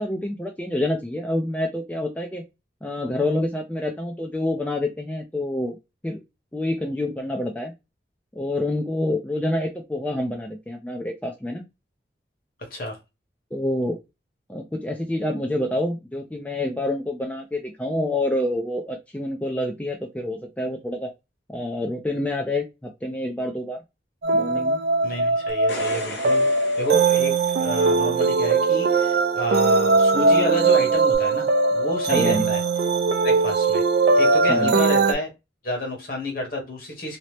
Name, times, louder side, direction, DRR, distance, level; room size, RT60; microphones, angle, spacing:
voice 1, 0.0-2.4 2.8-5.8 6.0-6.2 6.5-7.7 8.3-11.7 13.5-14.0 14.5-21.1 21.5-23.8 24.3-24.8 32.1-32.5 34.5-34.7, left 1 dB, 10° left, 2 dB, 0.3 m, -27 dB
sound 1, 24.2-35.1, right 3 dB, 60° right, 0.4 m, -20 dB
voice 2, 25.0-26.5 26.8-32.6 33.2-33.8 34.2-35.3 35.6-37.2, equal, 50° left, 2 dB, 1.0 m, -29 dB
sound 2, 25.5-28.0 31.1-31.2, left 1 dB, 80° left, 0.9 m, -37 dB
2.7 x 2.0 x 3.2 m, 0.24 s
head